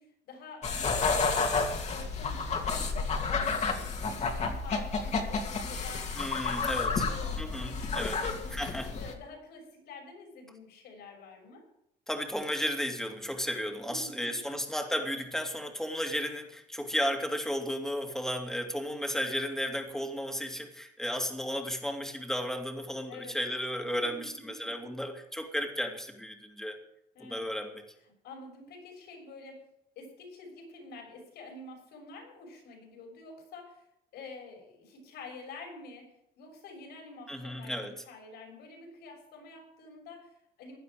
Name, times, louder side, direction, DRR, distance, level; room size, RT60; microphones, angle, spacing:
voice 1, 0.0-1.5 1.9-8.6 8.9-11.6 13.9-14.6 23.1-23.4 24.0-24.2 24.6-24.9 27.1-27.5 28.2-29.6 29.9-33.8 34.1-40.8, left 3 dB, 80° left, 2 dB, 6.6 m, -48 dB
sound 1, 0.6-9.1, left 4 dB, 40° left, 2.6 m, -31 dB
voice 2, 6.2-6.9 7.4-8.2 8.5-8.9 12.1-26.8 27.2-27.8 37.3-37.9, equal, 5° left, 4 dB, 2.5 m, -34 dB
16.5 x 11.0 x 5.1 m, 0.79 s
cardioid pair, 110°, 17 cm